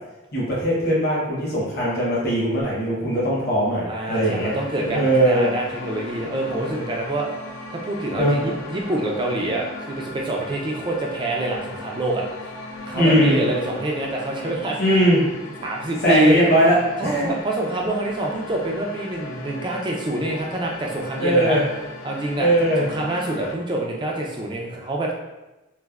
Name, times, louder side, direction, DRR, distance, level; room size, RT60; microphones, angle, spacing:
voice 1, 0.3-5.5 8.2-8.3 12.9-13.4 14.8-15.2 16.0-17.2 21.2-21.6 22.4-22.8, right 1 dB, 50° left, -7 dB, 0.9 m, -20 dB
voice 2, 3.9-7.3 7.7-12.2 12.9-14.8 15.6-16.4 17.0-21.6 22.0-22.5 22.8-25.1, right 1 dB, 25° right, -1 dB, 0.3 m, -26 dB
sound 1, 4.1-23.5, left 2 dB, 80° left, 0.4 m, -37 dB
3.1 x 2.0 x 2.3 m, 1.0 s
head